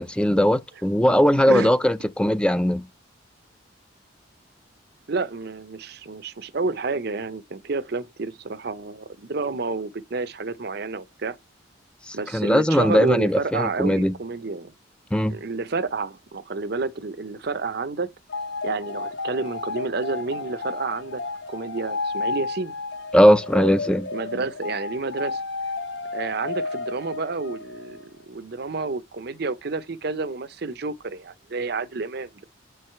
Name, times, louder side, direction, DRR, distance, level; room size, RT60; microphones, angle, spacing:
voice 1, 0.0-2.8 12.1-14.1 15.1-15.3 23.1-24.1, equal, 5° left, 0.4 m, -19 dB
voice 2, 5.1-11.4 12.1-14.7 15.3-18.1 18.6-21.2 21.5-22.8 24.1-25.4 26.1-32.4, right 3 dB, 60° right, 0.7 m, -30 dB
sound 1, 18.3-28.1, left 3 dB, 65° left, 0.8 m, -32 dB
8.1 x 4.7 x 4.5 m
head